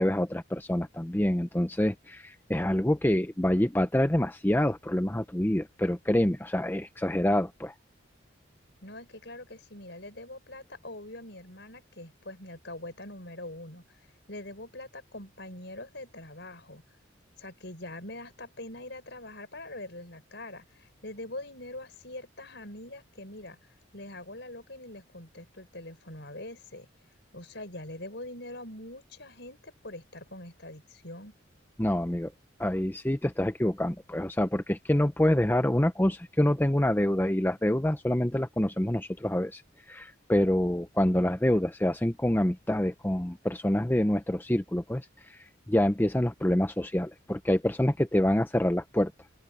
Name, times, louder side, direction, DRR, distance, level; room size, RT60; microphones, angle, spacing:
voice 1, 0.0-7.7 31.8-32.3 32.6-39.6 39.9-49.1, left 1 dB, 10° left, 0.6 m, -26 dB
voice 2, 8.8-13.8 14.3-16.8 17.4-23.6 23.9-26.9 27.3-31.3, left 1 dB, 60° left, 6.6 m, -43 dB
open air
head